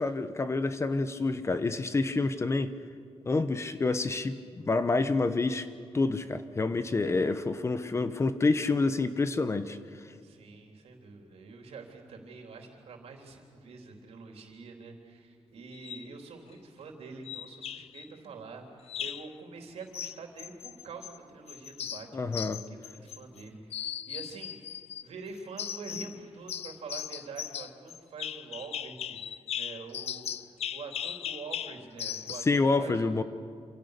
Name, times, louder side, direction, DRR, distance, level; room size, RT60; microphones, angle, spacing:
voice 1, 0.0-2.7 3.3-5.7 5.9-9.8 22.1-22.6 32.5-33.2, left 3 dB, 25° left, 11 dB, 1.0 m, -28 dB
voice 2, 6.9-7.3 10.2-18.6 19.0-22.1 22.5-33.2, right 4 dB, 75° right, 3 dB, 3.8 m, -46 dB
sound 1, 15.7-16.1 17.3-18.1 18.9-19.3 19.9-21.2 21.5-23.4 23.7-25.1 25.6-26.2 26.5-32.6, left 9 dB, 80° left, 0.7 m, -38 dB
27.5 x 27.0 x 6.8 m, 2.2 s
wide cardioid pair, 160°, 11 cm